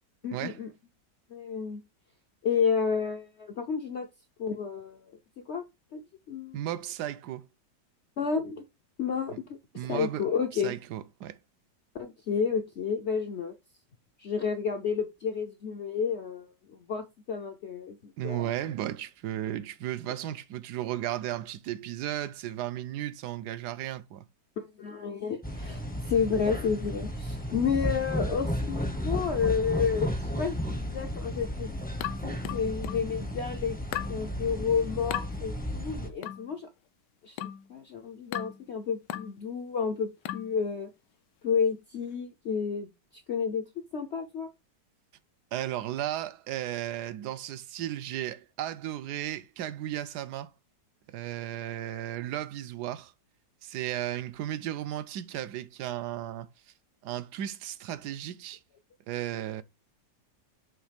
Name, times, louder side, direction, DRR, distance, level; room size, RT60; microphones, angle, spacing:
voice 1, 0.2-0.7 1.3-1.8 2.4-4.1 4.4-5.1 5.5-5.6 5.9-6.0 6.3-6.6 8.2-8.6 9.0-9.3 9.9-10.7 11.9-13.5 14.2-18.5 24.6-31.7 32.2-33.8 34.1-36.7 37.2-37.4 37.7-40.9 41.4-42.9 43.3-43.6 43.9-44.5, left 6 dB, 60° left, 0.7 m, -30 dB
voice 2, 6.5-7.4 9.7-10.2 10.5-11.4 18.2-24.2 45.5-50.5 51.1-53.1 53.6-56.5 57.0-58.6 59.1-59.6, right 12 dB, 75° right, 1.1 m, -35 dB
sound 1, 25.4-36.1, equal, 10° left, 0.5 m, -33 dB
sound 2, 32.0-33.1 33.9-34.2 35.1-35.3 36.2-36.5 37.4-37.7 38.3-38.6 39.1-39.4 40.2-40.5, left 12 dB, 80° left, 1.2 m, -36 dB
7.3 x 3.1 x 5.0 m
omnidirectional pair, 1.9 m